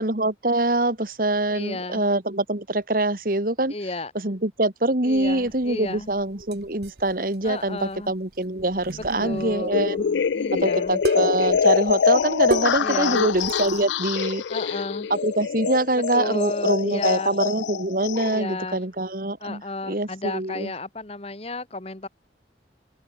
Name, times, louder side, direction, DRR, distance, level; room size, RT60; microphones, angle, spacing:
voice 1, 0.0-3.7 4.2-10.0 10.6-14.4 15.1-20.7, right 2 dB, 50° right, 2.0 m, -24 dB
voice 2, 1.5-2.1 3.7-4.1 5.0-6.1 7.4-8.1 9.2-11.0 12.8-13.3 14.5-15.1 16.1-17.3 18.2-18.8 19.4-22.1, left 2 dB, 35° left, 1.5 m, -33 dB
sound 1, 5.2-13.8, right 2 dB, 65° right, 1.6 m, -35 dB
sound 2, 9.7-18.4, left 6 dB, 90° left, 0.4 m, -24 dB
open air
head